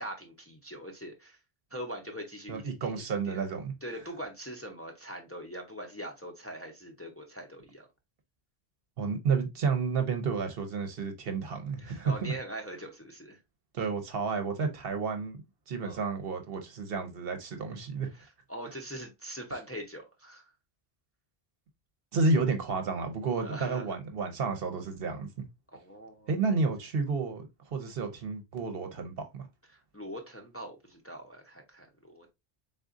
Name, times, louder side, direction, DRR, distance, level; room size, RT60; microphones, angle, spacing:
voice 1, 0.0-1.4 1.7-3.4 3.8-7.9 11.8-13.4 15.8-16.0 18.1-20.5 23.4-23.8 25.7-26.5 29.9-32.3, right 1 dB, 15° left, 0.7 m, -42 dB
voice 2, 2.5-3.7 9.0-12.3 13.7-18.1 22.1-25.3 26.3-29.5, right 4 dB, 65° right, 1.0 m, -31 dB
4.0 x 3.7 x 2.5 m
omnidirectional pair, 1.1 m